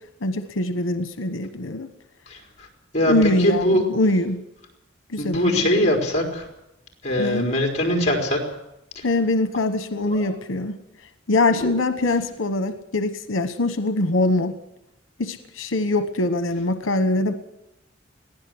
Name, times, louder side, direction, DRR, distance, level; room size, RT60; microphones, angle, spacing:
voice 1, 0.2-1.9 3.0-4.4 5.1-5.7 7.2-7.6 9.0-10.8 11.3-14.5 15.2-17.3, left 2 dB, 85° left, 10 dB, 1.1 m, -23 dB
voice 2, 2.3-2.7 2.9-3.1 3.4-3.8 5.2-6.4 7.0-8.4 8.9-9.0 10.1-10.2 11.6-11.7, left 1 dB, 35° left, 2 dB, 4.5 m, -22 dB
22.0 x 15.5 x 7.9 m, 0.88 s
head